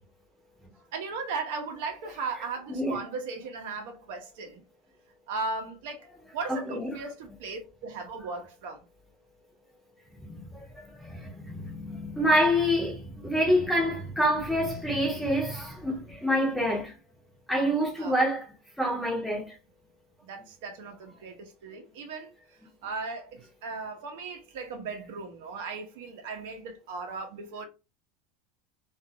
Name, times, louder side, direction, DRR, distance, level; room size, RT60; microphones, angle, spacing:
voice 1, 0.9-4.6 5.3-6.1 6.3-8.8 18.0-18.2 20.2-22.3 22.8-27.7, right 4 dB, 65° right, 0.8 m, -37 dB
voice 2, 2.7-3.0 6.5-7.0 10.2-16.9 17.5-18.5 18.8-19.6, equal, ahead, 0.7 m, -27 dB
2.5 x 2.4 x 2.7 m
supercardioid pair, 170°, 0 cm